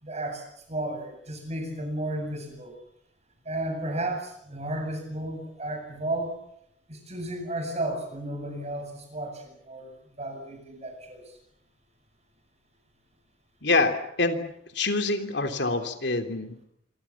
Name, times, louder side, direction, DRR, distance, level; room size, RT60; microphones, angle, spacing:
voice 1, 0.0-2.7 3.4-6.4 6.9-11.3, right 1 dB, 40° right, 5 dB, 7.8 m, -33 dB
voice 2, 13.6-14.4 14.7-16.6, left 3 dB, 75° left, 6 dB, 3.2 m, -26 dB
27.0 x 25.0 x 7.3 m, 0.75 s
head